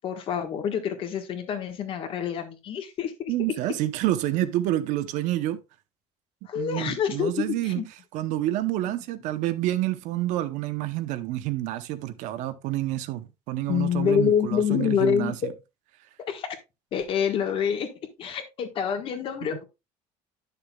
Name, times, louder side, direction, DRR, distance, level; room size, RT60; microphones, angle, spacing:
voice 1, 0.0-3.3 6.5-7.8 8.8-8.9 13.7-15.5 16.3-16.5 16.9-17.9 18.2-19.6, left 8 dB, 45° left, 1.4 m, -27 dB
voice 2, 3.3-5.6 6.5-7.8 8.1-15.4, right 15 dB, 70° right, 0.8 m, -28 dB
10.0 x 6.7 x 2.3 m
cardioid pair, 165°, 13 cm